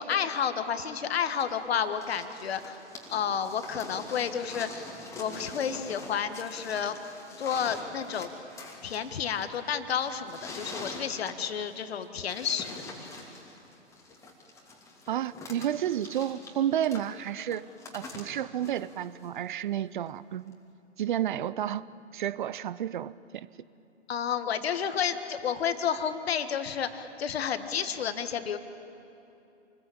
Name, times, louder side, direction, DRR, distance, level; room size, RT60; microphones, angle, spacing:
voice 1, 0.0-2.8 3.1-4.9 5.2-7.0 7.4-8.3 8.8-12.8 24.1-28.6, left 7 dB, 55° left, 10 dB, 1.8 m, -31 dB
sound 1, 1.4-19.5 20.5-20.6, left 3 dB, 10° left, 2.9 m, -45 dB
voice 2, 15.1-17.6 17.9-20.6 21.0-21.9 22.1-23.5, right 10 dB, 40° right, 19 dB, 0.7 m, -31 dB
27.5 x 20.5 x 8.8 m, 2.9 s
figure-of-eight pair, 130°, 36 cm